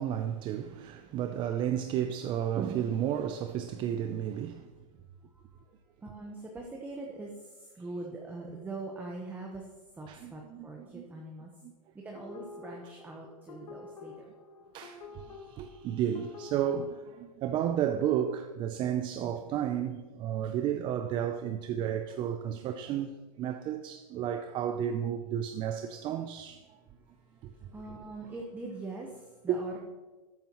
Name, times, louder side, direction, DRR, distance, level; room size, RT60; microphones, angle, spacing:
voice 1, 0.0-4.7 10.1-10.7 10.9-11.0 14.7-26.6 29.5-29.6, right 10 dB, 25° right, 0.5 m, -32 dB
voice 2, 5.3-5.6 6.0-11.5 11.9-14.3 26.9-29.8, right 2 dB, 10° right, 1.0 m, -43 dB
sound 1, 12.1-17.0, left 3 dB, 80° left, 1.5 m, -48 dB
13.0 x 8.9 x 3.0 m
hypercardioid pair, 140°, 18 cm